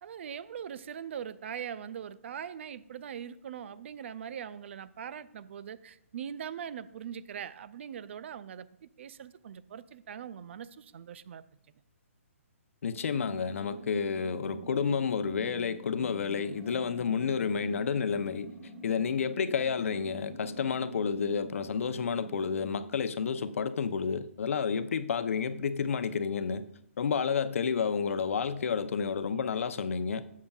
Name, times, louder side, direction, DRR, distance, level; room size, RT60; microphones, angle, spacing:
voice 1, 0.0-11.4 27.1-27.2, right 8 dB, 55° right, 0.5 m, -41 dB
voice 2, 12.8-18.5 18.8-26.7 27.0-30.2, left 6 dB, 65° left, 0.7 m, -30 dB
sound 1, 12.9-22.7, right 2 dB, 25° right, 3.8 m, -47 dB
13.0 x 8.4 x 2.4 m
hypercardioid pair, 140°, 8 cm